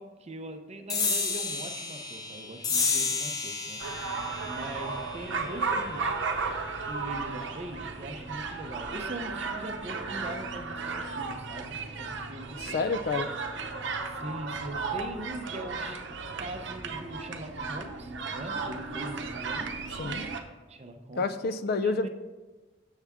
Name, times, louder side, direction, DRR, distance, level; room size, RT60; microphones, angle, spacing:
voice 1, 0.0-6.2 6.8-12.8 14.1-16.0 16.4-19.7 20.7-21.3 21.8-22.1, right 1 dB, 35° right, 6 dB, 0.6 m, -41 dB
sound 1, 0.9-7.7, left 4 dB, 20° left, 0.7 m, -33 dB
sound 2, 3.8-20.4, right 4 dB, 65° right, 0.7 m, -35 dB
voice 2, 12.6-13.3 20.0-20.3 21.1-22.1, left 4 dB, 55° left, 11 dB, 0.4 m, -29 dB
7.2 x 6.8 x 3.5 m, 1.2 s
head